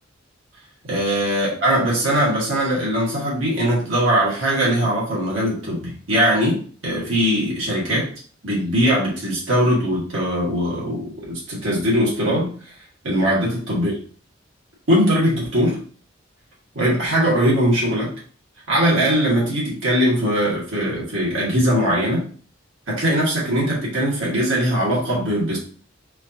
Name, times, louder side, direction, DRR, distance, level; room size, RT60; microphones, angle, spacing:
voice 1, 0.9-8.1 8.4-12.7 13.0-13.9 14.9-15.8 16.7-18.1 18.7-22.3 22.9-25.6, equal, 80° right, -5 dB, 1.6 m, -20 dB
4.9 x 2.6 x 2.8 m, 0.43 s
head